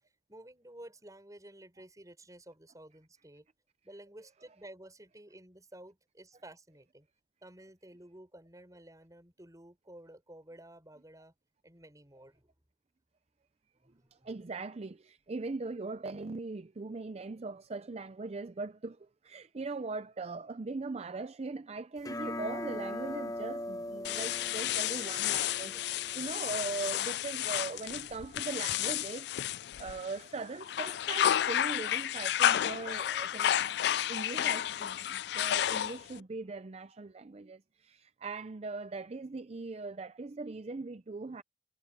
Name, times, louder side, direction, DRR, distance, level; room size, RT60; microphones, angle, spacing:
voice 1, 0.3-3.5 3.8-7.1 7.4-11.3 11.6-12.5 13.8-14.4 25.7-26.1, right 1 dB, 20° right, 7.0 m, -53 dB
voice 2, 14.2-29.3 29.8-33.6 34.1-41.4, right 3 dB, 35° right, 0.5 m, -40 dB
sound 1, 22.0-27.0, left 1 dB, 20° left, 1.0 m, -41 dB
sound 2, 24.0-30.2 30.6-36.2, left 11 dB, 65° left, 0.3 m, -31 dB
head